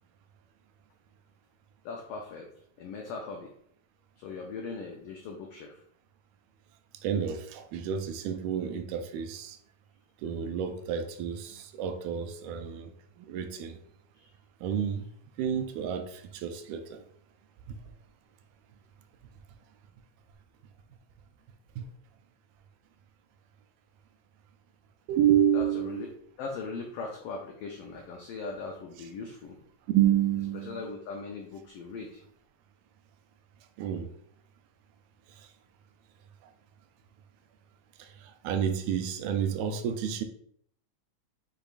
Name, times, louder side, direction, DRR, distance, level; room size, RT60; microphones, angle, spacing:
voice 1, 1.8-2.5 2.8-3.5 4.2-5.8 14.1-14.3 25.5-26.1 26.4-29.6 30.5-32.2, left 4 dB, 90° left, 2 dB, 1.3 m, -39 dB
voice 2, 7.0-9.6 10.2-12.9 13.2-13.8 14.6-15.1 15.4-17.0 21.8-21.9 25.1-26.1 29.9-30.9 33.8-34.1 38.0-40.2, right 9 dB, 85° right, 7 dB, 2.0 m, -29 dB
6.6 x 2.9 x 2.4 m, 0.66 s
omnidirectional pair, 3.3 m